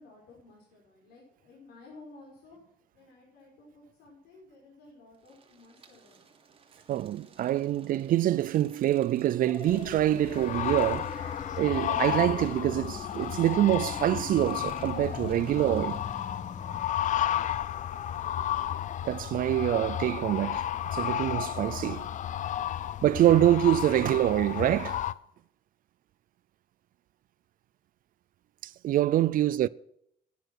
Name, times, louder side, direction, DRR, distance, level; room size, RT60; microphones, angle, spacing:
voice 1, 0.0-6.3 29.3-29.7, left 2 dB, 75° left, 5.6 m, -54 dB
sound 1, 5.1-16.7, right 5 dB, 30° right, 1.8 m, -57 dB
voice 2, 6.9-16.0 19.0-20.6 20.9-22.1 23.0-25.0 28.8-29.7, right 13 dB, 55° right, 0.4 m, -25 dB
sound 2, 9.5-16.9, left 5 dB, 30° left, 1.2 m, -43 dB
sound 3, 9.7-25.1, left 11 dB, 45° left, 0.5 m, -33 dB
11.0 x 10.0 x 6.2 m
cardioid pair, 110°, 17 cm